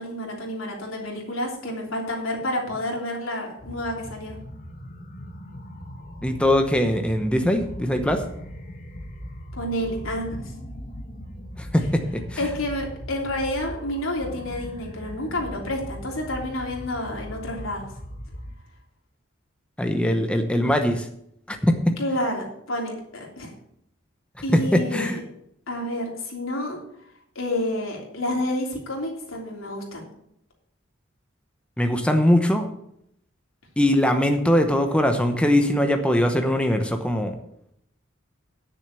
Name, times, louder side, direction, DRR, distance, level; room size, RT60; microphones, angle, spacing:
voice 1, 0.0-4.4 9.5-10.4 12.4-17.9 22.0-23.5 24.4-25.2 25.7-26.8 27.3-30.1, left 1 dB, 85° left, -1 dB, 3.3 m, -29 dB
sound 1, 3.6-18.6, equal, 40° left, 1.4 m, -39 dB
voice 2, 6.2-8.2 11.6-12.4 19.8-21.1 21.5-21.8 24.5-25.2 31.8-32.7 33.8-37.3, left 1 dB, 5° left, 5 dB, 0.9 m, -21 dB
10.0 x 6.7 x 6.8 m, 0.74 s
head